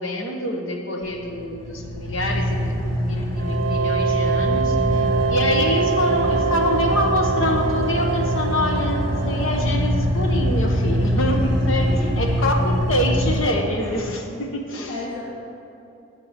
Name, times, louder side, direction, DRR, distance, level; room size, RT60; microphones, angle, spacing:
voice 1, 0.0-5.0 5.3-11.9 12.2-14.9, left 1 dB, 75° left, 2 dB, 1.2 m, -26 dB
Car / Idling, 1.1-14.0, equal, 20° left, 2.7 m, -24 dB
sound 1, 3.4-10.0, right 5 dB, 60° right, 0.4 m, -25 dB
voice 2, 11.5-12.4 14.9-15.2, left 1 dB, 40° left, -9 dB, 2.4 m, -33 dB
11.0 x 7.8 x 5.9 m, 2.7 s
head